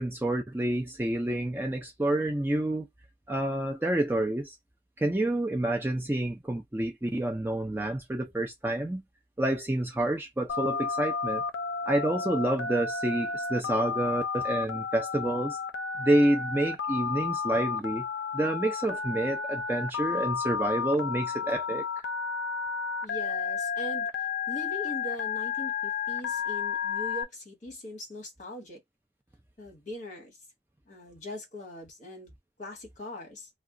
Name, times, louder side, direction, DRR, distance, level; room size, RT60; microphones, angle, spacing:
voice 1, 0.0-2.9 3.3-4.6 5.0-9.0 9.4-11.4 11.9-15.6 16.0-18.0 18.3-22.1, right 1 dB, 10° right, 0.4 m, -28 dB
Telephone, 10.5-27.2, left 5 dB, 85° left, 0.5 m, -32 dB
voice 2, 23.0-28.8 29.6-30.4 30.9-32.3 32.6-33.5, left 1 dB, 40° left, 1.3 m, -41 dB
2.3 x 2.3 x 3.7 m
head